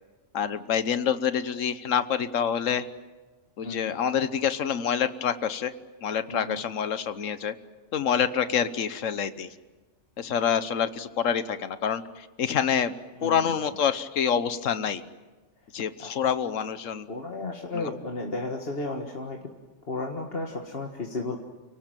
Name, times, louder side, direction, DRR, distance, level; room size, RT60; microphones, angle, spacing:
voice 1, 0.3-2.9 3.6-5.7 6.0-7.5 7.9-9.5 10.2-12.9 13.2-15.0 15.7-17.1 17.7-17.9, left 8 dB, 80° left, 12 dB, 1.4 m, -27 dB
voice 2, 3.6-4.0 6.3-6.6 13.2-13.6 16.0-16.1 17.1-19.4 19.9-21.4, left 2 dB, 50° left, 1 dB, 2.0 m, -33 dB
29.5 x 18.5 x 9.1 m, 1.3 s
omnidirectional pair, 1.3 m